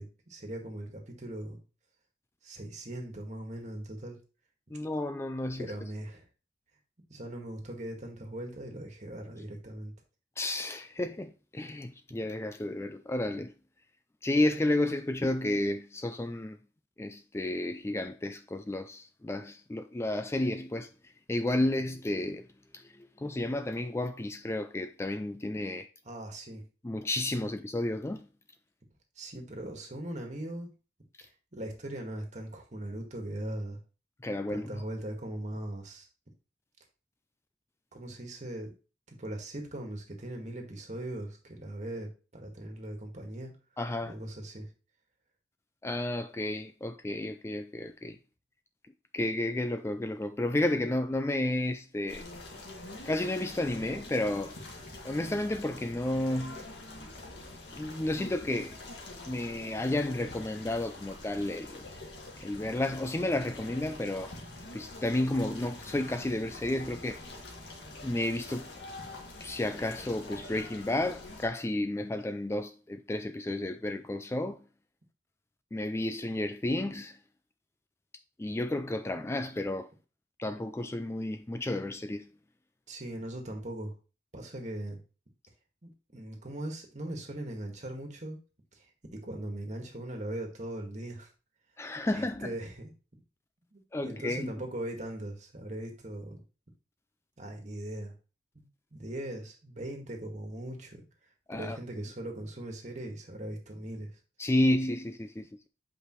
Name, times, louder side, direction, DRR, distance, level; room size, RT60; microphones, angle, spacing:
voice 1, 0.0-1.6 2.4-4.2 5.6-6.2 7.1-9.9 26.0-26.6 29.2-30.7 31.2-33.8 34.5-36.1 37.9-38.7 39.1-43.5 44.0-44.7 82.9-83.9 84.3-85.0 85.8-88.4 88.7-88.9 89.1-91.3 92.1-92.9 93.7-96.4 97.4-98.1 98.6-101.0 101.5-104.1, right 1 dB, 45° right, 1.7 m, -40 dB
voice 2, 4.7-5.7 10.4-13.5 14.2-16.6 17.0-20.9 21.3-22.5 22.7-22.9 23.2-25.9 26.8-28.2 34.2-34.7 43.8-44.1 45.8-48.2 49.1-52.3 53.1-54.5 55.0-56.6 57.7-58.8 59.3-61.9 62.4-64.3 64.7-67.2 68.0-68.7 69.4-74.6 75.7-77.2 78.4-79.9 80.4-82.3 91.8-92.5 93.9-94.5 101.5-101.8 104.4-105.7, left 1 dB, 15° left, 0.3 m, -32 dB
sound 1, 52.1-71.5, left 2 dB, 75° left, 1.9 m, -45 dB
8.3 x 5.0 x 3.1 m
head